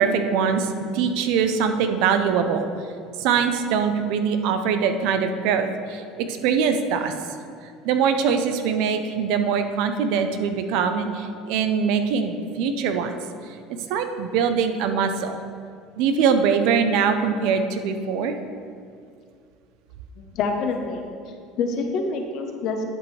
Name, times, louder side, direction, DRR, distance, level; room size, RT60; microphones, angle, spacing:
voice 1, 0.0-2.7 3.2-7.1 7.8-13.2 13.9-15.4 16.0-18.3, right 6 dB, 70° right, 8 dB, 0.6 m, -22 dB
voice 2, 20.2-21.0 21.6-22.8, left 4 dB, 60° left, 4 dB, 1.0 m, -26 dB
11.5 x 5.1 x 3.3 m, 2.3 s
supercardioid pair, 105°, 0 cm